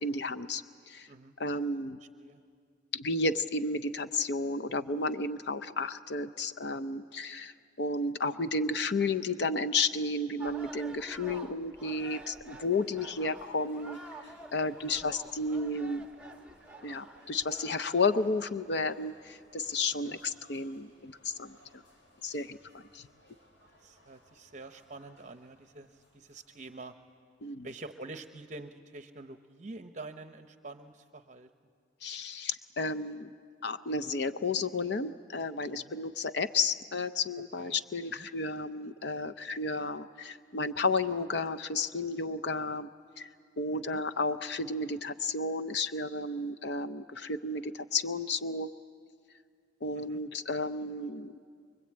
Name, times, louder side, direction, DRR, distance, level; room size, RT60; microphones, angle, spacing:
voice 1, 0.0-1.1 1.4-2.0 2.9-14.0 14.5-16.1 16.8-21.8 22.2-22.6 22.9-23.1 27.4-27.7 32.0-33.3 33.6-42.9 43.2-43.3 43.6-48.7 49.8-51.3, left 3 dB, 65° left, 12 dB, 0.6 m, -32 dB
sound 1, 10.4-17.8, right 2 dB, 5° right, 1.0 m, -49 dB
sound 2, 12.8-26.8, left 1 dB, 80° left, 5.9 m, -63 dB
voice 2, 15.5-15.9 20.0-20.2 23.8-27.0 27.6-31.5 35.7-36.0 37.6-37.8 38.2-38.3 43.7-44.0 49.9-50.2, right 2 dB, 40° right, 8 dB, 0.7 m, -47 dB
24.5 x 23.5 x 8.7 m, 2.2 s
head